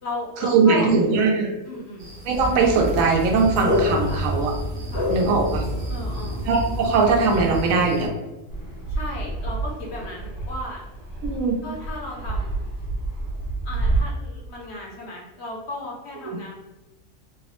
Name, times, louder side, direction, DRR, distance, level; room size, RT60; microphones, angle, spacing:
voice 1, 0.0-0.9 1.7-2.1 4.1-4.2 4.9-5.1 5.9-6.5 8.9-10.8 11.6-12.6 13.6-16.5, left 2 dB, 60° left, -2 dB, 0.8 m, -35 dB
voice 2, 0.5-1.5 2.2-4.5 5.1-5.6 6.5-8.1 11.2-11.6 16.3-16.4, right 4 dB, 80° right, 1 dB, 1.0 m, -20 dB
sound 1, 2.0-8.1, equal, 50° right, 1.0 m, -36 dB
sound 2, 2.3-7.7, left 1 dB, 15° right, 0.4 m, -28 dB
Fixed-wing aircraft airplane, 8.5-14.0, right 3 dB, 85° left, 1.3 m, -29 dB
3.1 x 2.0 x 2.9 m, 1.0 s
omnidirectional pair, 1.4 m